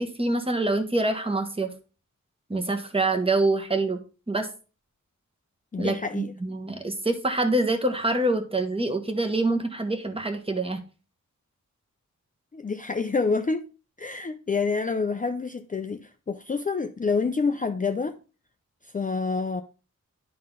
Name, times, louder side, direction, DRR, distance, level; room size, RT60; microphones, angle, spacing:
voice 1, 0.0-1.7 2.5-4.0 4.3-4.5 5.8-10.8, right 2 dB, 20° right, 1.1 m, -25 dB
voice 2, 5.7-6.3 12.5-13.6 14.0-18.2 18.9-19.6, left 4 dB, 25° left, 0.4 m, -27 dB
11.0 x 3.8 x 3.8 m
wide cardioid pair, 115°, 31 cm